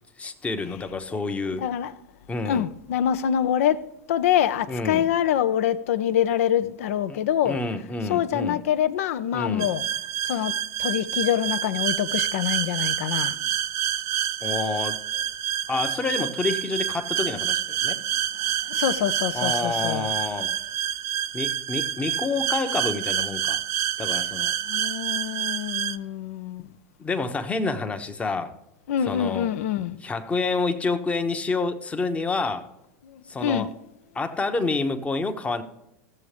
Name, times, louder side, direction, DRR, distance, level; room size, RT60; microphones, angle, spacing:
voice 1, 0.2-1.7 2.3-2.7 4.7-5.1 7.1-7.2 7.5-8.6 9.3-9.7 14.4-15.0 15.7-18.0 19.3-20.5 21.3-23.6 24.0-24.5 27.0-28.5 29.1-29.5 30.0-32.7 33.3-33.7 34.1-35.6, left 3 dB, 15° left, 0.9 m, -28 dB
voice 2, 1.5-1.9 2.5-3.8 4.1-7.6 8.1-9.8 10.2-10.5 10.8-13.4 17.8-18.2 18.7-20.1 24.6-26.7 28.9-30.0 33.0-33.7, left 10 dB, 65° left, 0.6 m, -25 dB
sound 1, 9.6-26.0, right 11 dB, 40° right, 0.5 m, -28 dB
16.5 x 7.0 x 3.3 m
hypercardioid pair, 90°, 8 cm